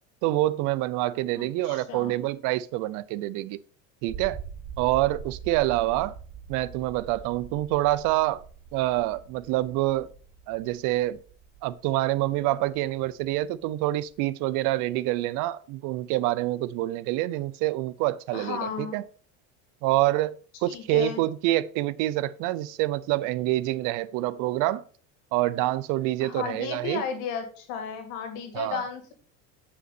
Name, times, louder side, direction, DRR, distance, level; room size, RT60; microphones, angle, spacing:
voice 1, 0.2-3.6 4.0-4.4 4.8-6.2 6.5-8.4 8.7-10.1 10.5-11.2 11.6-19.0 19.8-20.3 20.6-24.8 25.3-27.0 28.5-28.8, right 16 dB, 65° right, 0.6 m, -26 dB
voice 2, 1.4-2.1 18.3-19.0 20.6-21.2 26.2-29.1, left 6 dB, 75° left, 2.4 m, -34 dB
sound 1, 4.1-14.2, right 6 dB, 50° right, 1.0 m, -44 dB
7.8 x 5.6 x 4.1 m
cardioid pair, 130°, 34 cm